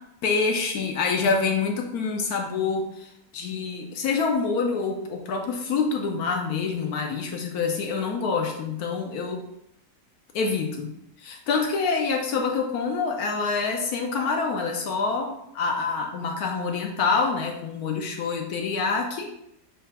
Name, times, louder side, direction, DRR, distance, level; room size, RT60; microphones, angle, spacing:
voice 1, 0.2-9.4 10.3-10.9 11.2-19.3, left 4 dB, 70° left, 2 dB, 1.0 m, -26 dB
6.5 x 2.4 x 3.4 m, 0.79 s
omnidirectional pair, 1.9 m